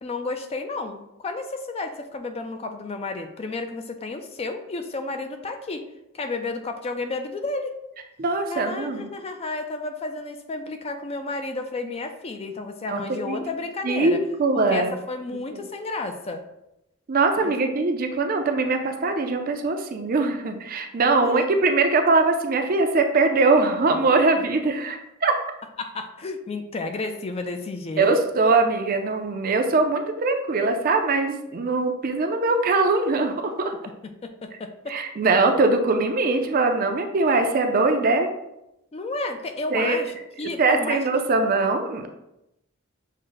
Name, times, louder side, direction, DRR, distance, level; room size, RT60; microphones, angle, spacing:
voice 1, 0.0-5.8 6.1-7.8 8.5-14.2 14.7-16.4 17.4-17.5 21.2-21.5 25.8-28.1 34.2-35.0 38.9-41.1, left 3 dB, 30° left, 6 dB, 0.4 m, -32 dB
voice 2, 8.2-9.1 12.9-13.0 13.3-13.4 13.8-14.9 15.5-15.6 17.1-25.3 28.0-33.7 34.9-38.3 39.7-40.0 40.6-42.1, right 3 dB, 45° right, 5 dB, 0.5 m, -22 dB
6.3 x 2.1 x 3.9 m, 0.86 s
head